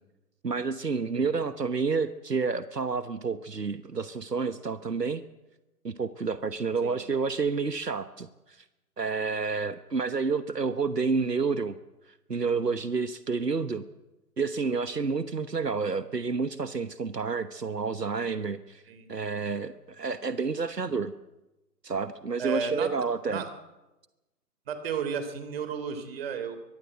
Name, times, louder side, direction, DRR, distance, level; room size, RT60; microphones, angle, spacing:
voice 1, 0.4-5.2 5.8-8.6 9.0-11.8 12.3-13.8 14.4-18.8 19.1-21.1 21.8-23.4, right 4 dB, 85° right, 13 dB, 1.2 m, -29 dB
voice 2, 18.9-19.4 22.4-22.9 23.3-23.5 24.7-26.6, right 6 dB, 40° right, 10 dB, 3.4 m, -33 dB
24.0 x 19.0 x 7.8 m, 1.0 s
figure-of-eight pair, 135°, 47 cm